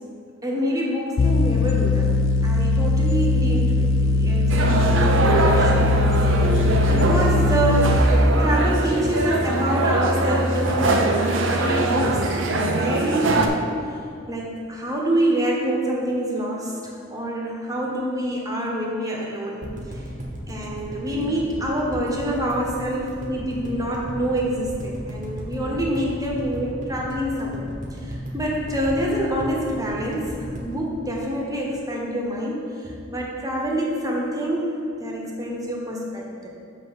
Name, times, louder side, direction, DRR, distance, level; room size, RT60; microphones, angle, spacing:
voice 1, 0.4-2.1 2.4-6.4 6.9-11.1 11.3-13.6 14.3-19.7 19.9-20.0 20.5-36.5, equal, 15° right, -2 dB, 1.3 m, -26 dB
sound 1, 1.2-8.0, left 2 dB, 80° left, 0.5 m, -20 dB
sound 2, 4.5-13.5, right 2 dB, 65° right, 0.7 m, -22 dB
sound 3, 19.6-31.8 32.1-32.2 32.4-32.5, equal, 40° right, 1.3 m, -35 dB
6.9 x 5.6 x 6.3 m, 2.4 s
head